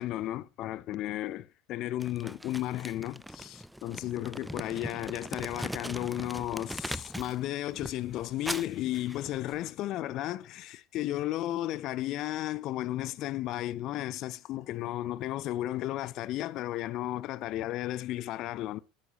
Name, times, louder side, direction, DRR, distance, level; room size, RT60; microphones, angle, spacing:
voice 1, 0.0-18.8, left 14 dB, 50° left, 0.5 m, -34 dB
Crumpling crinkling, 2.0-7.4 7.7-9.7, equal, ahead, 0.5 m, -40 dB
12.5 x 8.8 x 3.0 m
figure-of-eight pair, 75°, 0 cm